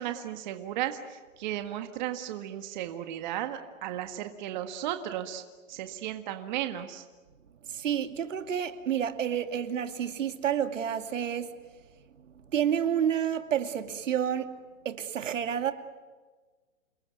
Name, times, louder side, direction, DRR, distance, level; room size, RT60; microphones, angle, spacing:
voice 1, 0.0-5.4 5.7-7.0, right 12 dB, 35° right, 1.7 m, -35 dB
voice 2, 7.6-11.5 12.5-14.6 14.8-15.7, right 9 dB, 70° right, 2.5 m, -29 dB
29.5 x 20.5 x 9.5 m
hypercardioid pair, 160°, 39 cm